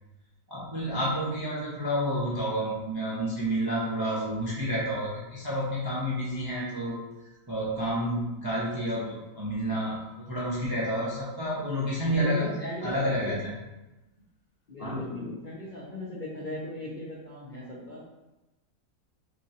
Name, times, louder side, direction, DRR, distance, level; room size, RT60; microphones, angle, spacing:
voice 1, 0.5-6.9 7.5-12.5 12.8-13.5 14.8-15.0, equal, 25° right, -6 dB, 0.4 m, -30 dB
voice 2, 11.9-13.4 14.7-18.0, left 1 dB, 45° left, -6 dB, 0.6 m, -37 dB
5.9 x 2.5 x 2.9 m, 1.0 s
omnidirectional pair, 1.7 m